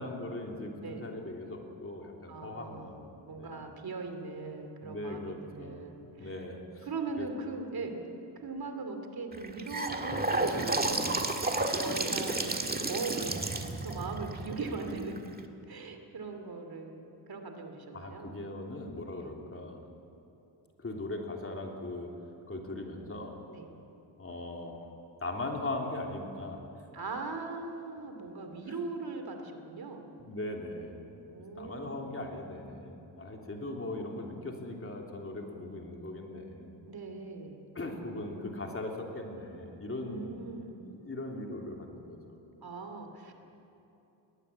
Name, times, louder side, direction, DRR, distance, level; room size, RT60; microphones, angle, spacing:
voice 1, 0.0-3.1 3.4-3.8 4.8-6.9 7.2-7.3 17.9-19.8 20.8-22.1 22.5-23.4 24.2-24.7 25.2-26.6 30.2-31.0 31.6-36.7 37.7-40.5 40.8-42.2, left 2 dB, 30° left, 1 dB, 3.3 m, -39 dB
voice 2, 2.3-6.4 6.8-8.0 8.3-15.2 15.7-18.4 19.2-19.3 23.5-23.7 26.9-30.1 31.3-32.1 36.9-37.7 38.1-38.6 40.0-40.8 42.6-43.3, right 4 dB, 55° right, 5 dB, 2.8 m, -40 dB
Gurgling / Sink (filling or washing) / Bathtub (filling or washing), 9.3-15.4, right 2 dB, 20° right, 1.9 m, -32 dB
20.5 x 20.5 x 8.6 m, 3.0 s
cardioid pair, 90°, 45 cm